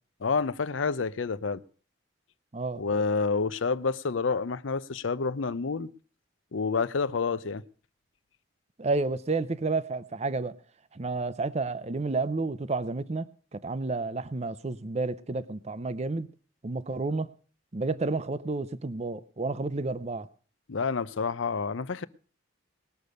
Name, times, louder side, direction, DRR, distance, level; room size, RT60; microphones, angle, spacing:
voice 1, 0.2-1.6 2.8-5.9 6.5-7.6 20.7-22.0, left 4 dB, 90° left, 0.6 m, -28 dB
voice 2, 8.8-10.6 10.9-13.2 13.5-16.3 16.6-17.3 17.7-20.3, right 3 dB, 35° right, 0.6 m, -30 dB
19.5 x 6.8 x 6.4 m
head